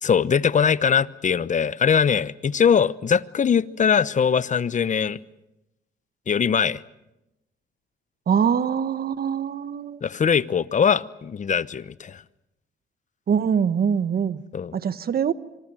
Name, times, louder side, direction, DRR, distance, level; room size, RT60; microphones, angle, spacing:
voice 1, 0.0-5.2 6.3-6.8 10.0-12.2 14.5-14.7, left 7 dB, 40° left, 0.9 m, -21 dB
voice 2, 8.3-10.0 13.3-14.4 14.7-15.3, right 7 dB, 50° right, 1.2 m, -23 dB
25.0 x 24.0 x 7.6 m
cardioid pair, 90°, 20 cm